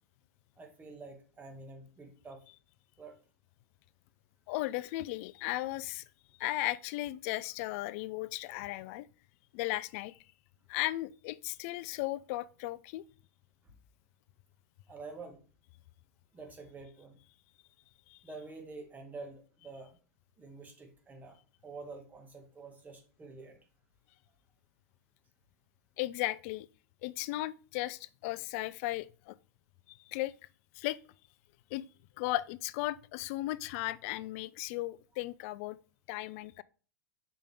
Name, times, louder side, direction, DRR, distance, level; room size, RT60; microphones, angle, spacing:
voice 1, 0.6-2.4 3.0-3.1 14.9-15.4 16.3-17.2 18.2-20.0 20.4-21.4 21.6-23.6, right 3 dB, 20° right, 2.1 m, -48 dB
voice 2, 4.5-6.0 6.4-9.1 9.5-10.1 10.7-13.0 18.1-18.2 26.0-26.7 27.0-29.4 29.9-30.3 30.8-31.0 31.7-31.8 32.2-35.8 36.1-36.6, left 17 dB, 55° left, 0.4 m, -36 dB
6.7 x 5.2 x 3.6 m
hypercardioid pair, 105°, 9 cm